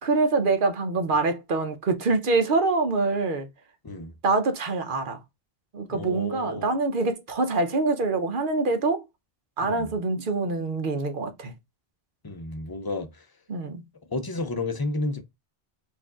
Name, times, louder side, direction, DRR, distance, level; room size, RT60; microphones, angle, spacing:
voice 1, 0.0-3.5 4.2-5.2 5.7-9.0 9.6-11.5 13.5-13.8, right 3 dB, 55° right, 0.9 m, -25 dB
voice 2, 5.9-6.7 9.6-9.9 12.2-13.2 14.1-15.2, left 2 dB, 30° left, 0.4 m, -31 dB
4.5 x 2.6 x 3.5 m
omnidirectional pair, 1.1 m